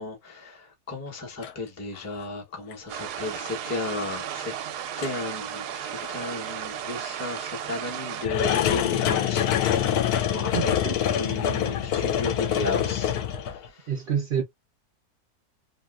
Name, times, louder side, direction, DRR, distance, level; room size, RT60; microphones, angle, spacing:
voice 1, 0.0-4.5 5.0-10.8 11.0-13.9, left 3 dB, 15° left, 0.6 m, -34 dB
sound 1, 1.4-1.5 2.0-2.2 2.7-2.8 3.9-4.0 5.0-5.1 6.0-6.1 8.2-13.7, left 9 dB, 75° left, 1.1 m, -25 dB
sound 2, 2.9-8.3, right 9 dB, 85° right, 1.2 m, -34 dB
voice 2, 10.5-11.0 13.9-14.4, right 7 dB, 65° right, 0.5 m, -27 dB
2.9 x 2.8 x 2.3 m
omnidirectional pair, 1.7 m